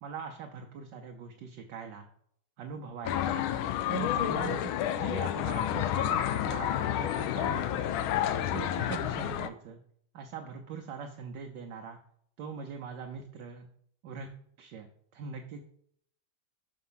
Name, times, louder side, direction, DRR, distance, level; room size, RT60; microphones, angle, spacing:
voice 1, 0.0-2.1 2.6-3.4 3.9-7.9 8.4-9.8 10.1-12.0 12.4-13.7 14.0-14.3 14.6-15.6, right 6 dB, 65° right, 4 dB, 1.2 m, -42 dB
sound 1, 3.0-9.5, left 11 dB, 75° left, 1.3 m, -30 dB
6.6 x 4.8 x 5.6 m, 0.67 s
omnidirectional pair, 2.4 m